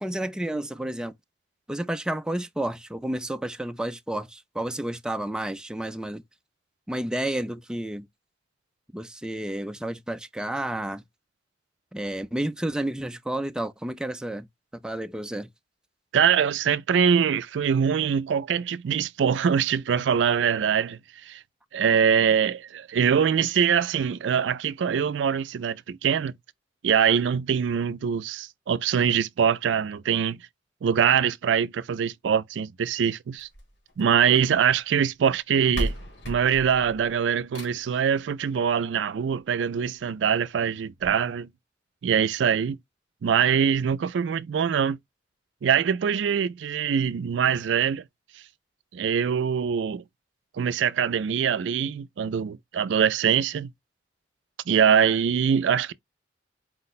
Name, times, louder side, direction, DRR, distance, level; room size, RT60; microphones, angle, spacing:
voice 1, 0.0-1.1 1.7-6.2 6.9-8.1 8.9-11.0 11.9-14.5 14.7-15.5, right 1 dB, 5° right, 0.3 m, -31 dB
voice 2, 16.1-21.4 21.7-26.3 26.8-30.4 30.8-33.5 34.0-35.9 36.3-41.5 42.0-42.8 43.2-45.0 45.6-48.0 48.9-50.0 50.6-53.7 54.7-55.9, right 7 dB, 85° right, 0.4 m, -23 dB
Heavy steal door closing and locking, 33.4-34.6 35.4-35.5 35.7-38.0 39.4-39.5 40.0-40.1 40.3-40.4 41.0-41.1, equal, 70° left, 1.7 m, -35 dB
4.6 x 2.1 x 4.0 m
head